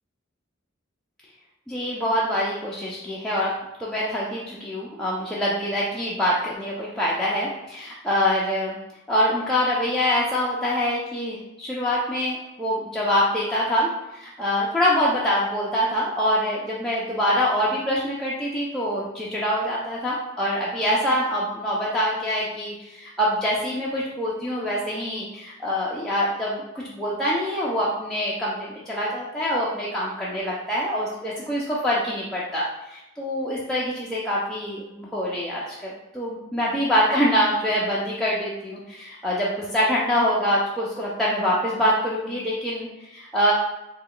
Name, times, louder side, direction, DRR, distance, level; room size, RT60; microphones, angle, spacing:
voice 1, 1.7-8.8 9.1-43.5, equal, 5° left, -7 dB, 0.4 m, -25 dB
3.4 x 2.2 x 3.7 m, 0.91 s
head